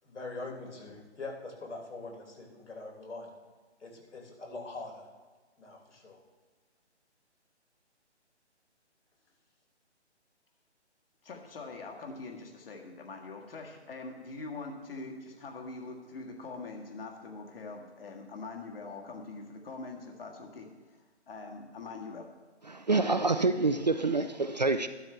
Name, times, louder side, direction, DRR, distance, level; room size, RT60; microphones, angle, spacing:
voice 1, 0.0-3.3 3.8-5.1 5.6-6.2, left 3 dB, 80° left, 3.5 m, -43 dB
voice 2, 11.2-22.3, left 3 dB, 55° left, 1.8 m, -43 dB
voice 3, 22.7-24.9, right 3 dB, 40° right, 0.4 m, -27 dB
13.0 x 12.0 x 3.4 m
figure-of-eight pair, 155°, 35 cm